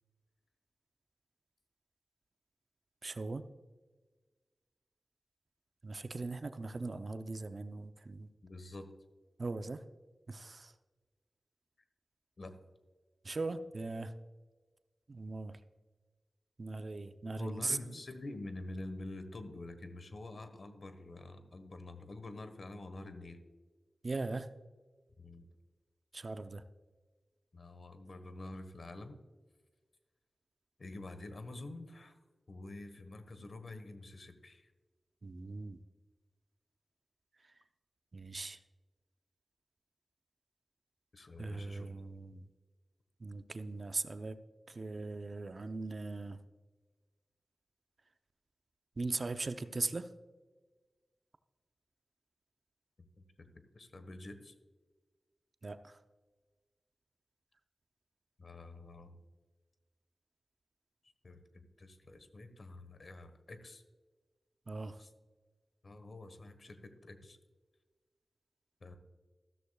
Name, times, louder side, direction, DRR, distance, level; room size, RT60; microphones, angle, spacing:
voice 1, 3.0-3.4 5.8-8.3 9.4-9.8 10.3-10.7 13.2-14.1 15.1-15.6 16.6-17.8 24.0-24.5 26.1-26.6 35.2-35.8 37.4-37.5 38.1-38.6 41.4-42.5 43.2-44.4 44.7-46.4 49.0-50.1 55.6-56.0 64.7-65.0, right 3 dB, 50° right, 9 dB, 0.6 m, -39 dB
voice 2, 8.4-8.9 12.4-12.5 17.4-23.4 25.2-25.5 27.5-29.2 30.8-32.2 32.5-34.7 41.1-41.9 53.2-53.3 53.5-54.5 58.4-59.2 61.2-63.8 65.0-65.1 65.8-67.4 68.8-69.0, left 2 dB, 60° left, 9 dB, 1.3 m, -47 dB
14.0 x 13.0 x 2.3 m, 1.4 s
wide cardioid pair, 75°, 0 cm